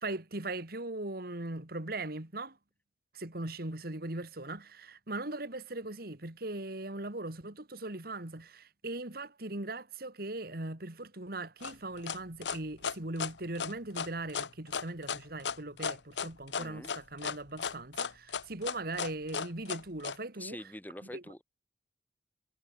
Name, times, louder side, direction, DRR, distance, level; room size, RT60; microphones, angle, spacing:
voice 1, 0.0-2.6 3.1-20.6 21.1-21.2, right 2 dB, 55° right, 2.4 m, -39 dB
sound 1, 11.6-20.2, left 6 dB, 85° left, 1.0 m, -35 dB
voice 2, 16.6-16.9 20.4-21.4, left 1 dB, 10° left, 3.1 m, -45 dB
head